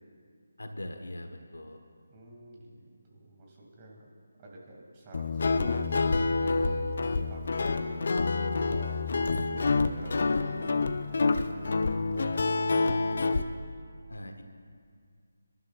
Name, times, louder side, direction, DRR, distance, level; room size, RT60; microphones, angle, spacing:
voice 1, 0.6-1.8 14.1-14.4, left 1 dB, 75° left, 5 dB, 1.2 m, -41 dB
voice 2, 2.1-4.1 4.4-8.2 8.7-13.3, right 1 dB, 25° right, -3 dB, 2.3 m, -49 dB
Guitar, 5.1-13.4, left 3 dB, 55° left, 0.6 m, -27 dB
28.5 x 12.0 x 2.4 m, 2.1 s
figure-of-eight pair, 155°, 0 cm